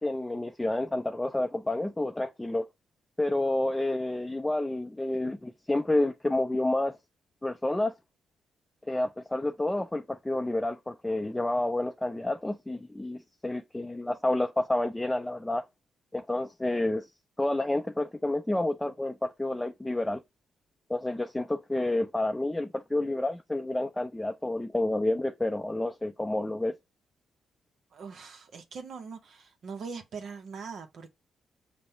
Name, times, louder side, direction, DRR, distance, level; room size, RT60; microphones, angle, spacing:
voice 1, 0.0-2.6 3.2-7.0 7.4-7.9 8.9-15.6 16.1-17.1 17.4-20.2 20.9-26.7, left 1 dB, 10° left, 0.4 m, -29 dB
voice 2, 27.9-31.1, right 5 dB, 65° right, 0.7 m, -41 dB
5.2 x 2.0 x 4.4 m
cardioid pair, 70°, 0 cm